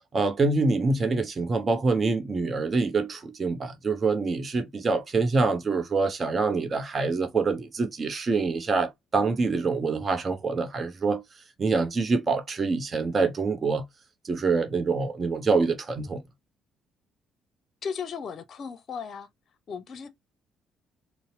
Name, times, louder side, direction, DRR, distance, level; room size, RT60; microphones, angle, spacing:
voice 1, 0.1-11.2 11.6-13.9 14.2-16.2, right 4 dB, 35° right, 0.7 m, -25 dB
voice 2, 17.8-19.3 19.7-20.1, left 6 dB, 45° left, 0.6 m, -35 dB
3.9 x 2.0 x 2.7 m
figure-of-eight pair, 45°, 0 cm